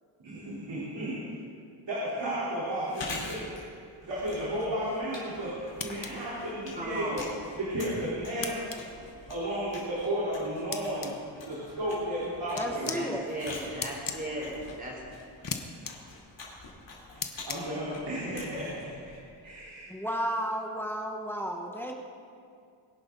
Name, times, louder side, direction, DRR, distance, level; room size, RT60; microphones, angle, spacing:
voice 1, 0.2-1.2 1.9-3.5 4.0-7.2 7.6-8.8 9.3-11.1 11.4-13.0 17.5-18.9 19.4-19.9, right 1 dB, 65° right, -9 dB, 3.9 m, -33 dB
Chewing mastication, 2.7-19.6, left 3 dB, 70° left, 3.9 m, -46 dB
sound 1, 5.8-6.1 8.4-8.8 10.7-11.1 12.6-13.0 13.8-14.2 15.4-15.6 15.9-16.0 17.2-17.6, left 6 dB, 45° left, 1.0 m, -34 dB
voice 2, 6.8-7.2 12.8-14.5 14.8-15.0, right 1 dB, 20° right, -3 dB, 3.7 m, -36 dB
voice 3, 12.5-13.2 19.9-21.9, equal, 5° left, 1 dB, 1.1 m, -33 dB
23.0 x 11.0 x 4.0 m, 2.3 s
wide cardioid pair, 165°, 46 cm